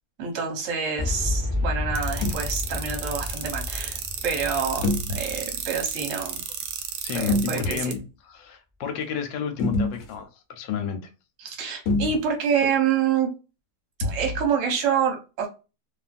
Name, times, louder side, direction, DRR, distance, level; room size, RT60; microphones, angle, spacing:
voice 1, 0.2-4.8 5.1-6.4 7.1-7.9 11.4-13.3 14.0-15.5, right 7 dB, 50° right, 1.1 m, -27 dB
Boom, 1.0-6.9, left 2 dB, 10° left, 0.5 m, -31 dB
sound 1, 2.0-7.9, right 8 dB, 75° right, 0.9 m, -32 dB
sound 2, 2.2-2.5 4.8-5.3 7.1-8.0 9.6-10.2 11.9-12.3 14.0-14.4, left 2 dB, 60° left, 1.0 m, -27 dB
voice 2, 7.0-8.0 8.3-11.0, left 7 dB, 85° left, 1.3 m, -31 dB
2.7 x 2.4 x 2.4 m
omnidirectional pair, 2.0 m